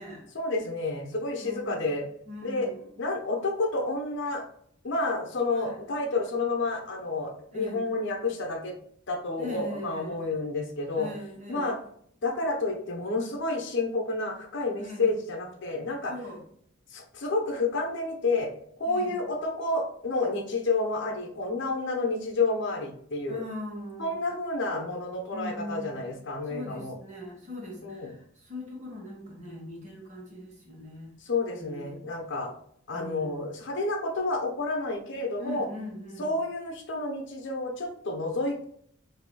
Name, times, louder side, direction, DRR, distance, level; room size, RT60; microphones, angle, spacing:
voice 1, 0.3-2.0 2.4-2.7 3.0-4.4 4.8-8.8 9.1-11.1 11.5-11.8 12.2-16.1 16.9-18.5 18.8-23.4 24.0-27.0 27.8-28.1 31.2-32.5 32.9-35.7 36.2-38.6, left 3 dB, 60° left, 2 dB, 0.7 m, -30 dB
voice 2, 1.4-1.9 2.3-2.9 5.5-5.8 7.5-7.9 9.4-10.3 11.0-11.8 14.8-15.1 16.1-16.4 18.8-19.2 23.3-24.2 25.3-26.2 26.5-31.1 31.5-32.1 32.9-33.5 35.4-36.3, left 1 dB, 35° right, -2 dB, 1.2 m, -41 dB
4.8 x 2.7 x 2.2 m, 0.65 s
head